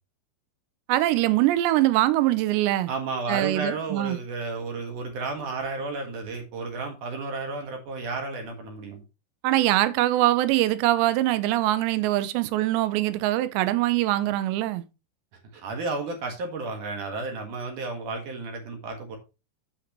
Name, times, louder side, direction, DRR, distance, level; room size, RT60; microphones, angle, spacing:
voice 1, 0.9-2.9 3.3-4.2 9.4-14.8, right 15 dB, 85° right, 2.9 m, -23 dB
voice 2, 2.9-9.0 15.5-19.2, right 3 dB, 60° right, 2.5 m, -32 dB
8.7 x 8.0 x 3.0 m
omnidirectional pair, 5.0 m